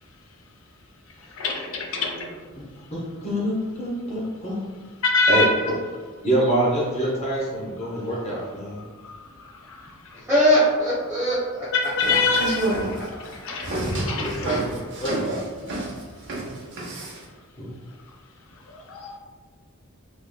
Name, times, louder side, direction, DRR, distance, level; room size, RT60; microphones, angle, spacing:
voice 1, 1.1-2.3 2.8-2.9 5.0-5.7 7.8-7.9 9.0-10.2 11.7-14.7 17.9-18.2 18.5-19.2, left 3 dB, 70° left, 1 dB, 0.6 m, -26 dB
voice 2, 2.9-4.7 5.3-5.4 6.2-8.8 14.2-14.6 15.0-15.4 17.6-17.7, right 1 dB, 30° left, -6 dB, 0.8 m, -26 dB
voice 3, 10.3-11.7, equal, 10° right, -12 dB, 1.0 m, -20 dB
sound 1, 11.8-17.2, right 2 dB, 55° right, 0.8 m, -29 dB
3.4 x 3.3 x 2.2 m, 1.5 s
head